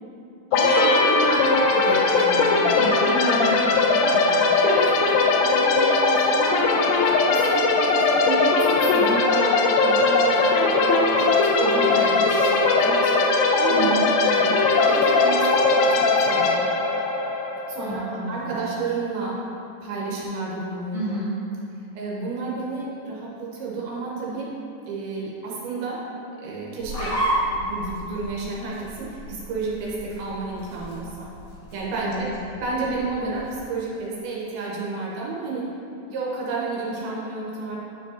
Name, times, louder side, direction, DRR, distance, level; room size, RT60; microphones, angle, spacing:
sound 1, 0.5-18.1, left 3 dB, 90° left, 2.0 m, -20 dB
voice 1, 0.5-4.5 13.7-14.1 17.8-18.6 20.9-21.3 32.0-32.2, equal, 50° left, -14 dB, 1.9 m, -30 dB
voice 2, 1.8-3.4 4.6-6.9 7.3-14.6 14.8-16.6 17.7-19.4 19.8-21.2 22.0-24.5 24.9-26.0 26.4-27.2 27.5-31.3 31.7-32.3 32.6-35.7 36.1-37.8, right 4 dB, 75° right, -5 dB, 2.6 m, -31 dB
sound 2, 26.8-33.6, right 1 dB, 70° left, 1.4 m, -32 dB
9.7 x 5.1 x 2.7 m, 2.8 s
omnidirectional pair, 4.7 m